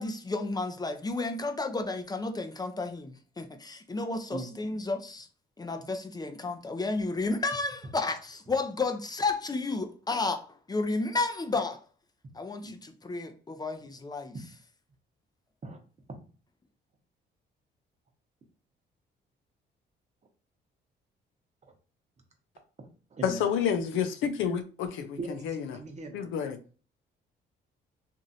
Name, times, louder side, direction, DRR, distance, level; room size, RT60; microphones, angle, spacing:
voice 1, 0.0-5.3 5.6-11.8 12.3-14.4, left 3 dB, 20° left, 0.4 m, -32 dB
voice 2, 4.3-4.8 12.6-12.7 15.6-15.8 22.8-23.5 25.2-25.4 25.7-26.3, right 2 dB, 35° right, 0.9 m, -40 dB
voice 3, 23.2-25.8 26.1-26.6, left 7 dB, 90° left, 0.5 m, -29 dB
3.0 x 2.5 x 2.6 m
cardioid pair, 90°, 20 cm